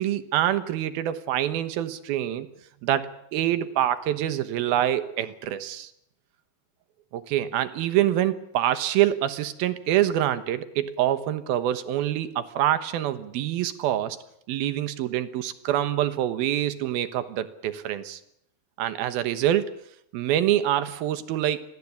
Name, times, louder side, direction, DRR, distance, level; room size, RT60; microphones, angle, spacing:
voice 1, 0.0-2.5 2.8-5.9 7.1-14.2 14.5-18.2 18.8-19.7 20.1-21.6, right 12 dB, 85° right, 12 dB, 3.0 m, -25 dB
25.5 x 17.0 x 8.4 m, 0.75 s
omnidirectional pair, 4.2 m